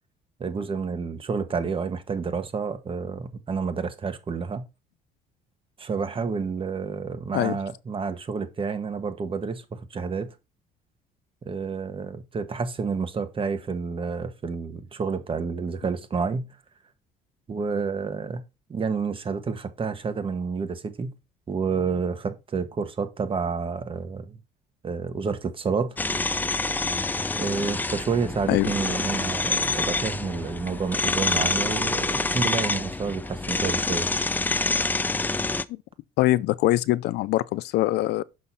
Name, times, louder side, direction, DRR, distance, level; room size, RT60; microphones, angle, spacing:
voice 1, 0.4-4.6 5.8-10.3 11.4-16.5 17.5-18.4 18.7-21.1 21.5-24.4 24.8-26.0 27.3-34.1, right 5 dB, 30° right, 1.3 m, -29 dB
sound 1, 26.0-35.6, left 3 dB, 10° left, 0.4 m, -27 dB
voice 2, 36.2-38.2, left 16 dB, 80° left, 0.5 m, -23 dB
6.5 x 5.5 x 4.1 m
cardioid pair, 110°, 17 cm